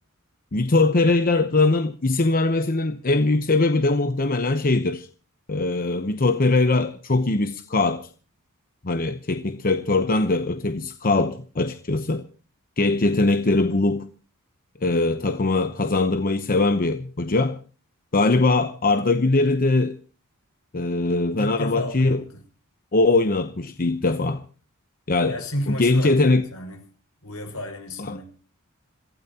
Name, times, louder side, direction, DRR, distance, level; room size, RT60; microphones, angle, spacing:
voice 1, 0.5-5.1 5.5-8.1 8.8-12.2 12.8-14.1 14.8-17.6 18.1-20.0 20.7-22.2 22.9-24.4 25.1-25.3 25.7-26.4 28.1-28.2, left 2 dB, 40° left, 0.9 m, -21 dB
voice 2, 21.4-22.4 25.3-26.8 27.2-28.3, left 1 dB, 70° left, 6.1 m, -32 dB
27.0 x 16.0 x 2.9 m
head